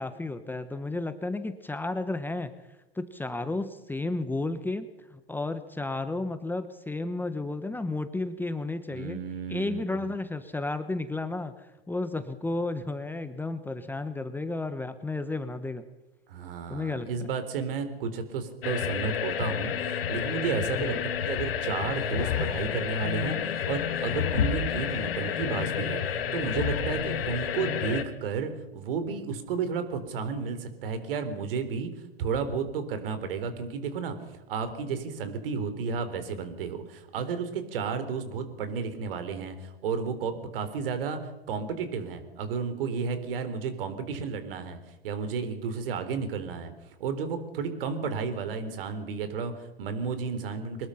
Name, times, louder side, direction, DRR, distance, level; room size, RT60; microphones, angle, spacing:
voice 1, 0.0-2.5 2.9-9.2 9.5-15.8 16.7-17.3 20.8-21.0, left 2 dB, 5° left, 10 dB, 1.2 m, -33 dB
voice 2, 8.9-10.1 16.3-21.0 21.2-31.9 32.2-34.1 34.5-41.2 41.5-44.8 45.0-46.7 47.0-50.9, right 5 dB, 65° right, 10 dB, 4.1 m, -32 dB
sound 1, 18.6-28.0, left 8 dB, 75° left, 2.5 m, -30 dB
23.5 x 20.5 x 5.9 m, 1.0 s
hypercardioid pair, 110°, 30 cm